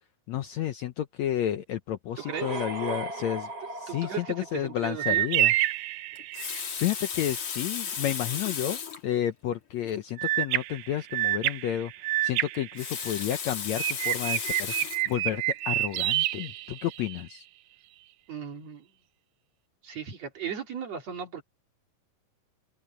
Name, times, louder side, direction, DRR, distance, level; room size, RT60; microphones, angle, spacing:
voice 1, 0.3-3.5 3.7-5.5 6.8-11.9 12.2-17.5, left 11 dB, 70° left, 1.7 m, -31 dB
sound 1, 2.1-5.2, right 3 dB, 30° right, 3.0 m, -37 dB
voice 2, 2.2-2.6 3.9-5.3 18.3-18.9 19.8-21.4, right 7 dB, 50° right, 3.7 m, -37 dB
sound 2, 5.0-6.7 10.2-13.4 13.8-17.2, right 15 dB, 75° right, 2.0 m, -28 dB
Water tap faucet, 6.2-9.1 9.9-10.0 10.2-10.3 12.5-15.1 15.8-16.0, left 7 dB, 55° left, 3.8 m, -35 dB
omnidirectional pair, 4.0 m